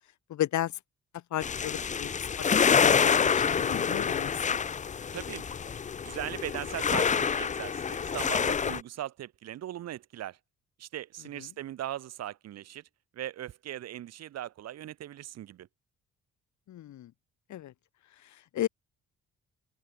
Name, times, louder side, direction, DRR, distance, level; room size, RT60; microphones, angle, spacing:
voice 1, 0.3-0.8 1.3-2.3 2.8-4.6 11.4-11.5 16.7-17.1 17.5-17.7 18.3-18.7, left 13 dB, 70° left, 1.6 m, -34 dB
sound 1, 1.4-8.8, left 6 dB, 25° left, 0.5 m, -27 dB
voice 2, 5.1-5.4 6.0-10.4 10.8-12.8 13.1-15.7, right 12 dB, 60° right, 0.8 m, -39 dB
open air
cardioid pair, 90°, 30 cm